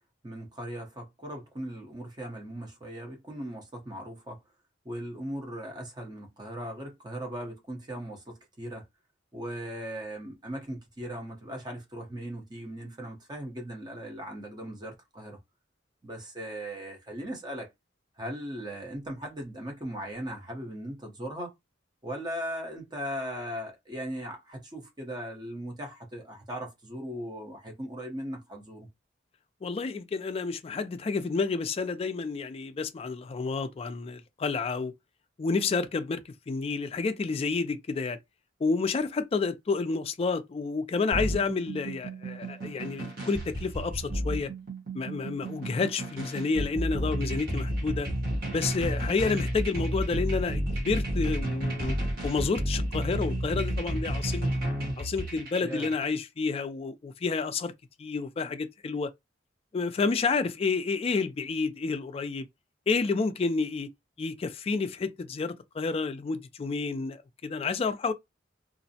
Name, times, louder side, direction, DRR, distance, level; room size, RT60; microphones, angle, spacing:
voice 1, 0.2-4.4 4.8-8.8 9.3-15.4 16.0-17.7 18.2-21.5 22.0-28.9 55.6-55.9, equal, 20° right, 0.7 m, -38 dB
voice 2, 29.6-34.9 35.4-36.2 36.5-38.2 38.6-44.5 44.9-48.1 48.5-52.0 52.2-54.5 55.0-57.7 58.0-59.1 59.7-62.5 62.9-63.9 64.2-68.1, left 4 dB, 30° left, 0.3 m, -30 dB
sound 1, 41.1-56.1, right 1 dB, 50° right, 1.0 m, -31 dB
2.5 x 2.0 x 2.7 m
head